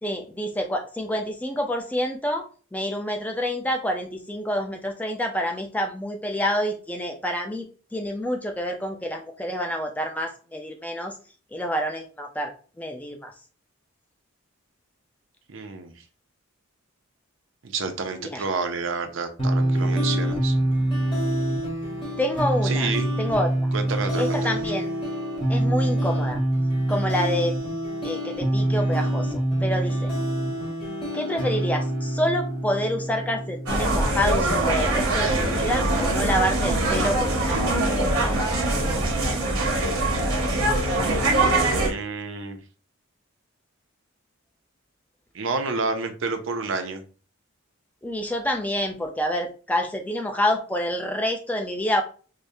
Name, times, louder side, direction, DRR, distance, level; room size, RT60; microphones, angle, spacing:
voice 1, 0.0-2.4 2.7-11.2 11.5-13.3 18.2-18.4 22.2-22.9 23.2-23.7 24.2-24.9 25.5-26.4 26.9-27.6 28.0-30.1 31.1-37.7 48.0-52.0, equal, 5° left, 3 dB, 0.4 m, -27 dB
voice 2, 15.5-15.9 17.6-20.6 22.6-23.1 23.7-24.5 41.8-42.6 45.3-47.0, right 4 dB, 60° right, 7 dB, 0.5 m, -29 dB
sound 1, 19.4-34.4, right 1 dB, 25° left, 1.0 m, -25 dB
sound 2, 33.7-41.9, right 2 dB, 85° right, 1.0 m, -23 dB
4.8 x 2.1 x 2.6 m, 0.38 s
head